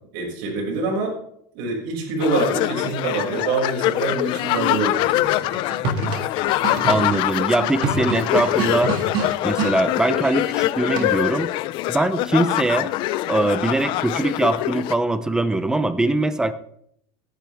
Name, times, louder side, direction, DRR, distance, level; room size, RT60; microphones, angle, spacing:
voice 1, 0.1-1.2 1.5-5.5, right 3 dB, 70° right, -1 dB, 6.0 m, -25 dB
sound 1, 2.2-14.9, left 16 dB, 45° left, 0.4 m, -24 dB
sound 2, 5.4-9.8 11.0-11.4, right 5 dB, 45° right, 2.0 m, -28 dB
voice 2, 6.9-8.9 9.4-11.5 11.9-12.9 13.3-16.5, right 2 dB, 5° right, 12 dB, 0.6 m, -22 dB
16.5 x 10.5 x 3.5 m, 0.70 s
supercardioid pair, 160°, 12 cm